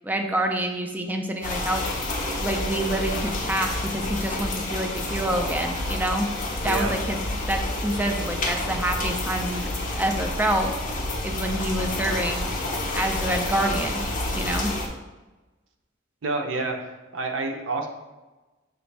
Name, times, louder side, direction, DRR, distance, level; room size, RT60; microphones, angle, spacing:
voice 1, 0.0-1.8 2.4-6.3 6.6-10.7 11.2-12.5 12.9-14.0 14.3-14.7, right 1 dB, 10° right, 3 dB, 0.4 m, -27 dB
sound 1, 1.4-14.9, left 2 dB, 40° left, 0.6 m, -29 dB
voice 2, 6.6-7.0 16.2-17.9, right 3 dB, 70° right, 3 dB, 0.6 m, -28 dB
6.0 x 2.6 x 3.3 m, 1.2 s
head